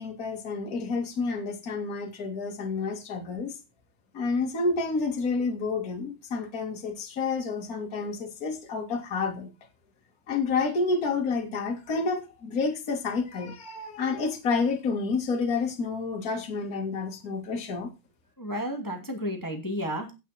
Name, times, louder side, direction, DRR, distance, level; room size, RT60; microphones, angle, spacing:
voice 1, 0.0-3.5 4.1-9.5 10.3-17.9, left 4 dB, 30° left, 2.1 m, -29 dB
voice 2, 18.4-20.1, equal, 10° left, 0.9 m, -32 dB
16.0 x 6.2 x 4.3 m
omnidirectional pair, 4.2 m